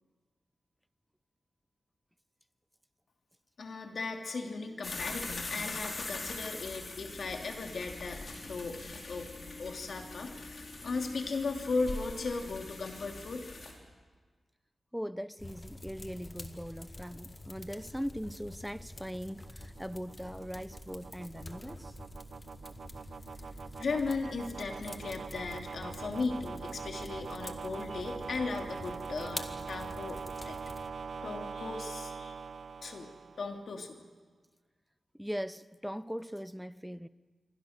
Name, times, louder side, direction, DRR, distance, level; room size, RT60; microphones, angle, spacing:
voice 1, 3.6-9.3 9.6-13.5 23.8-30.2 30.4-30.6 31.2-32.4 32.8-33.1 33.4-34.0, left 4 dB, 70° left, 2.9 m, -37 dB
sound 1, 4.8-13.7, left 3 dB, 50° left, 4.6 m, -42 dB
voice 2, 14.9-22.0 35.1-37.1, equal, ahead, 0.6 m, -40 dB
sound 2, 15.4-30.9, left 2 dB, 20° left, 1.7 m, -48 dB
sound 3, 17.7-33.7, right 5 dB, 70° right, 0.7 m, -44 dB
27.0 x 24.0 x 6.7 m
wide cardioid pair, 120°, 0 cm